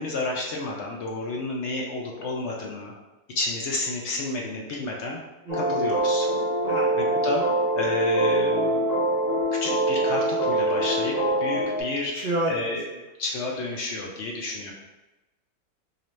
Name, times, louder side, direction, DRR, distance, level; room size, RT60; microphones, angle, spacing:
voice 1, 0.0-2.9 3.3-5.2 5.5-6.3 7.2-7.4 7.8-8.9 9.6-12.8 13.2-14.7, left 2 dB, 65° left, -1 dB, 0.7 m, -30 dB
voice 2, 5.4-5.8 6.6-7.0 12.1-13.0, right 1 dB, 85° right, -4 dB, 0.4 m, -30 dB
sound 1, 5.5-11.8, right 1 dB, 25° left, 1.3 m, -24 dB
4.1 x 2.9 x 3.1 m, 1.0 s
omnidirectional pair, 1.6 m